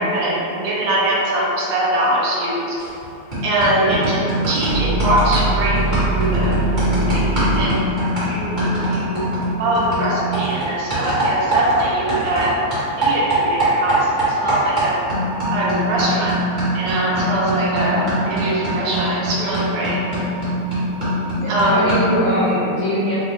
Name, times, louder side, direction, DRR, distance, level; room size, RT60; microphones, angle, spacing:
voice 1, 0.0-2.8 3.4-4.2 4.5-6.6 7.0-7.8 8.2-9.3 9.6-12.6 13.0-15.0 15.5-16.4 16.7-20.1 21.5-21.9, right 1 dB, 80° right, -5 dB, 1.7 m, -22 dB
sound 1, 2.8-3.0 3.3-12.5 12.7-22.2, right 1 dB, 40° right, 0.6 m, -22 dB
sound 2, 4.7-9.8, right 3 dB, 60° right, 1.2 m, -23 dB
voice 2, 17.8-18.1 21.3-23.2, left 1 dB, 85° left, -8 dB, 1.3 m, -22 dB
6.1 x 2.1 x 3.1 m, 2.8 s
omnidirectional pair, 3.4 m